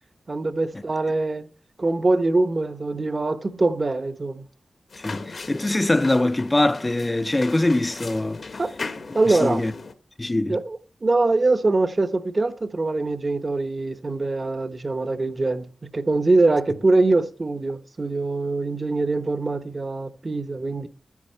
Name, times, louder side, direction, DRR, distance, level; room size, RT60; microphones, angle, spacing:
voice 1, 0.3-1.5 1.8-4.5 8.6-8.7 9.1-9.6 10.5-20.9, right 2 dB, 40° right, 0.9 m, -23 dB
sound 1, 4.9-9.9, left 4 dB, 65° left, 1.1 m, -38 dB
voice 2, 5.0-8.4 9.3-9.7 10.2-10.6, left 2 dB, 20° left, 0.5 m, -23 dB
12.5 x 9.7 x 4.4 m
wide cardioid pair, 90°, 0 cm